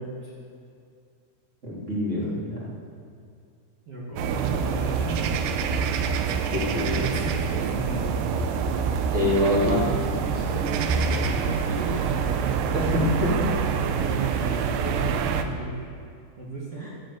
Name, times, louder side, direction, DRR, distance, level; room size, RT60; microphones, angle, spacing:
voice 1, 1.6-2.7 6.3-7.1 9.1-9.8 12.7-13.5 16.8-16.9, left 1 dB, 20° right, -6 dB, 2.7 m, -26 dB
voice 2, 3.9-5.5 6.7-8.2 9.6-13.1 13.4-15.9 16.4-16.9, right 4 dB, 45° right, -7 dB, 2.0 m, -34 dB
sound 1, 4.2-15.4, right 6 dB, 80° right, 3.0 m, -26 dB
14.5 x 7.8 x 8.1 m, 2.4 s
omnidirectional pair, 5.6 m